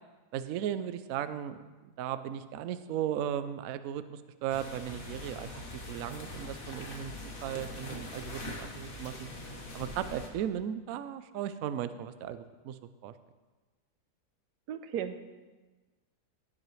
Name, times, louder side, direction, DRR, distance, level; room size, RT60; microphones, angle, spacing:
voice 1, 0.3-1.6 2.0-5.5 5.9-7.1 7.4-9.3 9.7-13.1, right 10 dB, 70° right, 12 dB, 0.9 m, -36 dB
sound 1, 4.5-10.3, left 1 dB, 55° left, 1.8 m, -42 dB
voice 2, 14.7-15.3, right 8 dB, 90° right, 9 dB, 1.3 m, -36 dB
17.0 x 7.6 x 3.2 m, 1.2 s
omnidirectional pair, 1.7 m